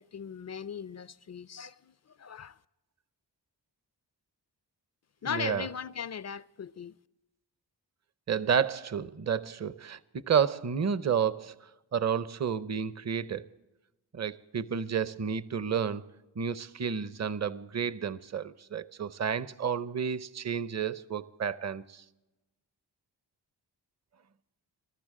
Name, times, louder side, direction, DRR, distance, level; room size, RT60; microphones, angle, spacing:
voice 1, 0.0-2.6 5.2-6.9, left 7 dB, 40° left, 0.4 m, -38 dB
voice 2, 5.3-5.7 8.3-13.5 14.1-16.0 16.4-22.0, right 7 dB, 40° right, 0.7 m, -31 dB
21.5 x 13.0 x 3.7 m
cardioid pair, 40°, 43 cm